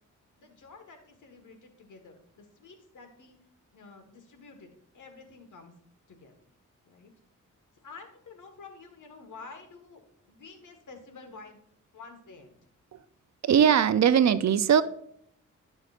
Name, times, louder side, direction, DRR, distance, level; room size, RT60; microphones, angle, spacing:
voice 1, 0.3-3.4 3.7-5.7 6.1-6.3 6.8-7.1 7.7-10.0 10.3-11.6 11.9-12.6, left 4 dB, 70° left, 5 dB, 1.5 m, -49 dB
voice 2, 13.4-14.8, right 8 dB, 60° right, 14 dB, 0.5 m, -20 dB
12.0 x 6.3 x 2.5 m, 0.69 s
cardioid pair, 60°, 32 cm